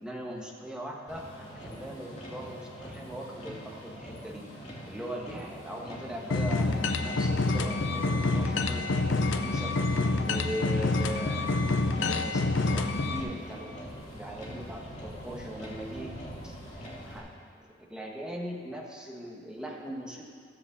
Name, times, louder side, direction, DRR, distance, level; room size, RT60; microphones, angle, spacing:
voice 1, 0.0-4.5 4.9-9.7 10.2-11.5 12.0-16.1 16.4-17.3 17.9-20.2, equal, 5° right, -1 dB, 1.2 m, -40 dB
Motor vehicle (road), 1.1-17.2, equal, 40° left, 2.6 m, -44 dB
sound 1, 6.3-13.2, left 3 dB, 80° left, 0.6 m, -27 dB
13.5 x 5.1 x 7.6 m, 2.1 s
head